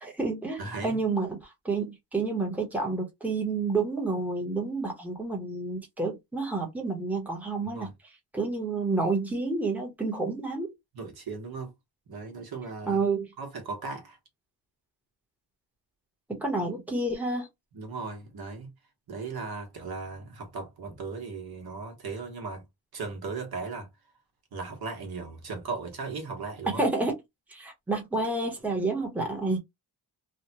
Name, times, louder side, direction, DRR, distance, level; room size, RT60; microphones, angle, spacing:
voice 1, 0.0-7.9 8.3-10.7 12.9-13.3 16.3-17.5 26.8-27.2 27.5-29.6, right 3 dB, 5° right, 0.9 m, -29 dB
voice 2, 0.6-1.0 7.6-7.9 10.9-11.7 12.1-13.0 13.4-14.2 17.7-18.7 19.1-22.6 22.9-23.9 24.5-26.8, right 4 dB, 65° right, 1.1 m, -37 dB
3.4 x 2.2 x 2.8 m
wide cardioid pair, 130°, 41 cm